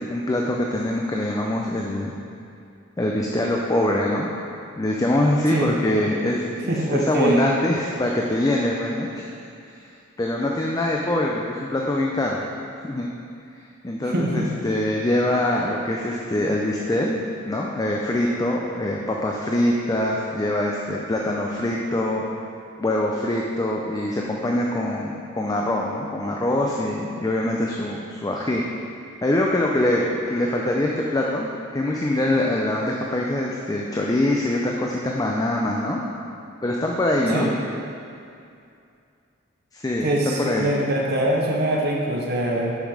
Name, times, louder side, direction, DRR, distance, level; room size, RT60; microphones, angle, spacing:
voice 1, 0.0-2.1 3.0-4.3 4.8-9.3 10.2-12.4 12.8-13.1 13.8-22.3 22.8-28.6 29.2-36.0 36.6-37.5 39.7-40.7, left 1 dB, 20° left, -1 dB, 0.4 m, -24 dB
voice 2, 6.7-7.4 14.0-14.5 37.3-37.5 40.0-42.8, right 1 dB, 50° right, -2 dB, 0.8 m, -23 dB
7.0 x 5.6 x 4.8 m, 2.5 s
head